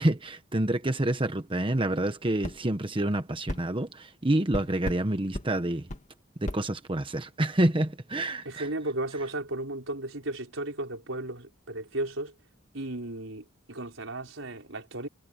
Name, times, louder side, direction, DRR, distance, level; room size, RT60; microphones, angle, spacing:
voice 1, 0.0-5.9 6.4-8.7, right 1 dB, 25° right, 1.1 m, -28 dB
sound 1, 2.4-2.6 3.5-3.6 4.5-5.0 5.3-5.5 5.9-6.0 6.5-6.6, left 1 dB, 40° left, 2.1 m, -34 dB
voice 2, 8.4-12.4 12.7-15.1, right 2 dB, 80° right, 4.9 m, -35 dB
head